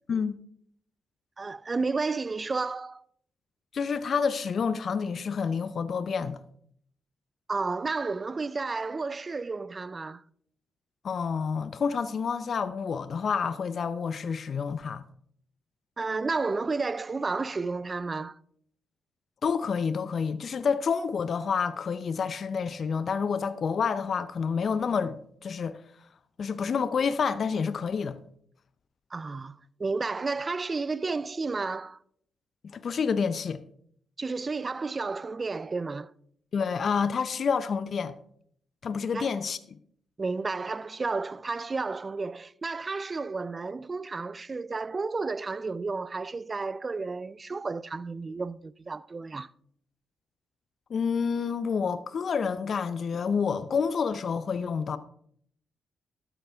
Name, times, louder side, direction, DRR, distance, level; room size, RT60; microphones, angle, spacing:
voice 1, 1.4-3.0 7.5-10.2 16.0-18.4 29.1-32.0 34.2-36.1 39.1-39.3 40.2-49.5, right 4 dB, 35° right, 0.4 m, -32 dB
voice 2, 3.7-6.4 11.0-15.0 19.4-25.8 26.4-28.2 32.6-33.6 36.5-38.2 38.8-39.6 50.9-55.0, left 6 dB, 55° left, 0.5 m, -28 dB
12.5 x 9.0 x 3.5 m
hypercardioid pair, 45°, 0 cm